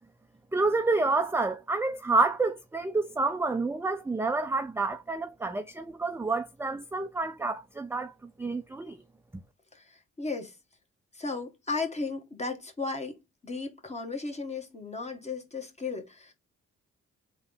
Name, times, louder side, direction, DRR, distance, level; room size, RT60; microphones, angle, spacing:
voice 1, 0.5-8.1 8.4-9.0, right 3 dB, 10° right, 0.4 m, -28 dB
voice 2, 9.7-10.6 11.1-13.2 13.4-16.3, left 3 dB, 20° left, 1.4 m, -35 dB
3.6 x 2.9 x 3.7 m
cardioid pair, 70°, 30 cm